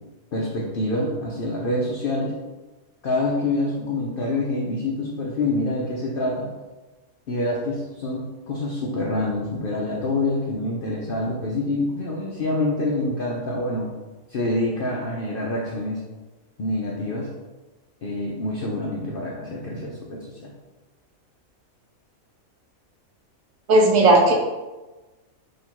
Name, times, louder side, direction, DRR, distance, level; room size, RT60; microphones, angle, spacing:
voice 1, 0.3-2.3 3.0-6.5 7.3-13.9 14.3-16.0 16.6-17.3 18.0-20.5, left 2 dB, 60° left, -3 dB, 0.6 m, -26 dB
voice 2, 23.7-24.3, right 2 dB, 70° right, 1 dB, 1.1 m, -15 dB
3.8 x 2.7 x 4.4 m, 1.2 s
omnidirectional pair, 1.5 m